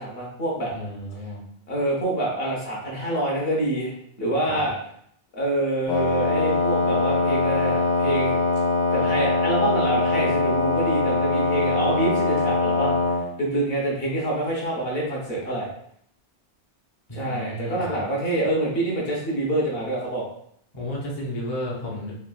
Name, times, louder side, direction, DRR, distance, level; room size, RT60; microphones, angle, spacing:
voice 1, 0.0-0.7 1.7-4.7 5.3-8.4 8.9-15.7 17.1-20.2, right 1 dB, 60° left, -3 dB, 1.1 m, -26 dB
voice 2, 0.7-1.4 4.5-4.7 17.1-18.0 20.7-22.2, equal, 30° left, -5 dB, 0.6 m, -32 dB
Wind instrument woodwind instrument, 5.9-13.3, left 3 dB, 85° left, 1.5 m, -22 dB
3.3 x 2.3 x 2.3 m, 0.68 s
omnidirectional pair, 1.2 m